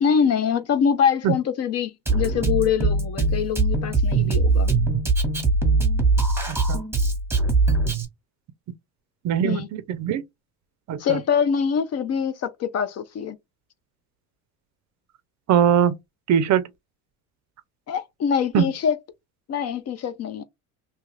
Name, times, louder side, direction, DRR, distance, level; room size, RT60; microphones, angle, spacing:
voice 1, 0.0-4.7 9.4-9.7 11.0-13.4 17.9-19.0 19.5-20.4, left 7 dB, 40° left, 0.5 m, -24 dB
Drum kit, 2.1-8.1, right 3 dB, 5° right, 1.0 m, -21 dB
voice 2, 6.5-6.8 9.2-10.2 10.9-11.2 15.5-16.0 16.3-16.6 18.5-18.7, right 9 dB, 40° right, 0.5 m, -21 dB
2.7 x 2.4 x 3.1 m
supercardioid pair, 105°, 43 cm